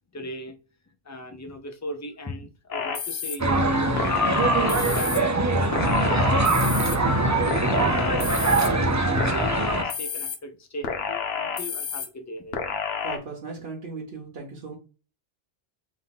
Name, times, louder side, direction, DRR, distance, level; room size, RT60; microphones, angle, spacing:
voice 1, 0.1-0.6 1.0-4.3 4.5-6.2 6.7-12.6, left 1 dB, 20° left, 0.6 m, -38 dB
sound 1, 2.7-3.4 4.0-5.2 5.7-7.0 7.5-8.7 9.2-10.4 10.8-12.1 12.5-13.2, left 6 dB, 80° left, 1.0 m, -30 dB
sound 2, 3.4-9.8, right 2 dB, 25° right, 0.4 m, -22 dB
voice 2, 13.0-14.8, right 4 dB, 70° right, 1.1 m, -37 dB
3.6 x 2.7 x 3.9 m
omnidirectional pair, 1.0 m